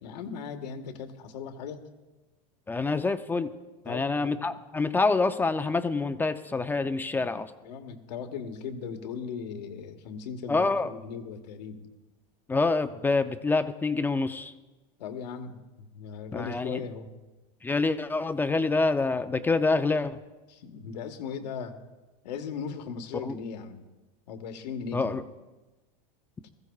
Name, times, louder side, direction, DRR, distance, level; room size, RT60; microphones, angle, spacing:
voice 1, 0.0-1.8 3.8-4.5 7.6-11.9 15.0-17.1 20.5-21.8 22.2-23.8 24.3-25.1, left 6 dB, 85° left, 6 dB, 1.6 m, -38 dB
voice 2, 2.7-3.5 3.9-7.5 10.5-10.9 12.5-14.5 16.3-16.8 17.6-20.2 23.2-23.4 24.9-25.2, left 3 dB, 10° left, 9 dB, 0.4 m, -26 dB
20.5 x 15.0 x 2.4 m, 1.1 s
supercardioid pair, 145°, 21 cm